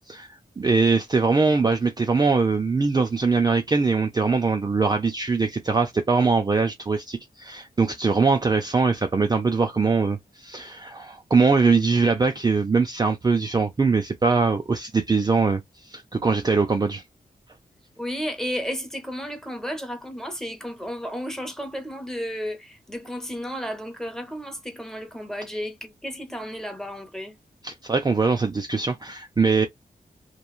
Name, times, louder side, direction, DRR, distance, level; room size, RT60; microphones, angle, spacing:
voice 1, 0.0-17.0 27.6-29.7, right 4 dB, 25° right, 0.4 m, -22 dB
voice 2, 17.9-27.4, equal, 5° left, 0.9 m, -33 dB
3.0 x 2.2 x 2.3 m
wide cardioid pair, 100°, 16 cm